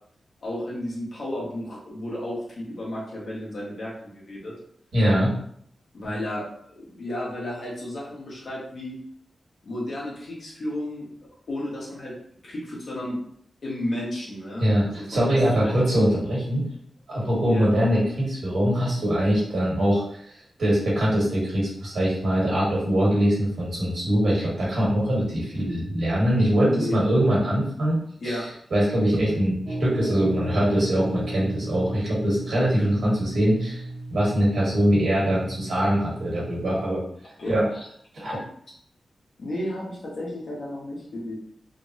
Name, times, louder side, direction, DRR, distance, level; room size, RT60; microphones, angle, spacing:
voice 1, 0.4-4.6 5.9-6.4 6.8-8.9 9.6-11.1 11.5-12.1 12.4-13.2 13.6-15.8 17.5-17.8 26.6-27.0 28.2-28.5 37.4-37.9 39.4-41.3, left 1 dB, 60° left, -5 dB, 1.1 m, -33 dB
voice 2, 4.9-5.3 14.6-16.6 17.1-20.0 20.6-28.0 28.2-28.4 28.7-33.8 34.1-37.0 37.5-37.7 38.1-38.4, equal, 80° right, -5 dB, 1.4 m, -22 dB
sound 1, 29.7-36.9, right 2 dB, 45° right, 0.8 m, -35 dB
3.3 x 2.1 x 2.7 m, 0.65 s
wide cardioid pair, 175°, 0 cm